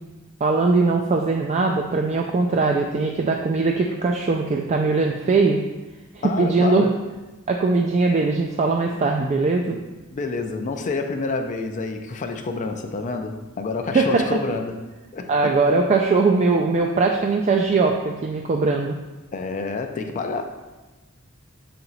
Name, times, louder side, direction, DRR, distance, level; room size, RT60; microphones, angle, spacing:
voice 1, 0.4-5.6 6.2-6.8 7.5-9.8 13.9-14.2 15.3-19.0, right 3 dB, 35° right, 2 dB, 0.3 m, -20 dB
voice 2, 6.2-6.9 10.1-14.7 15.1-15.6 19.3-20.4, left 3 dB, 35° left, 6 dB, 0.4 m, -28 dB
5.8 x 4.2 x 3.9 m, 1.2 s
head